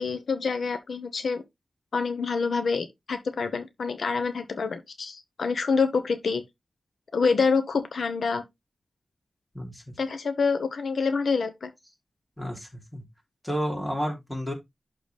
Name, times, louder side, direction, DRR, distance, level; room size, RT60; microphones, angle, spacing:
voice 1, 0.0-1.4 1.9-6.4 7.1-8.4 10.0-11.7, left 5 dB, 75° left, 0.9 m, -27 dB
voice 2, 9.5-9.9 12.4-13.0 13.4-14.5, equal, 5° left, 3.0 m, -31 dB
11.5 x 3.9 x 3.3 m
wide cardioid pair, 135°, 0 cm